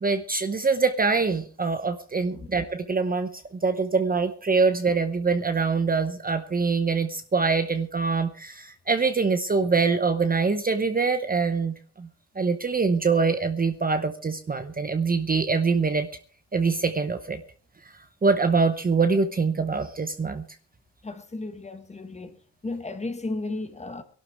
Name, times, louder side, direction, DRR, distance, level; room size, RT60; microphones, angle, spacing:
voice 1, 0.0-3.3 3.6-12.1 12.4-16.1 16.5-17.4 18.2-20.4, right 4 dB, 25° right, 0.9 m, -24 dB
voice 2, 21.0-22.4 22.6-24.0, left 2 dB, 15° left, 1.4 m, -34 dB
23.0 x 12.0 x 3.5 m
wide cardioid pair, 160°, 38 cm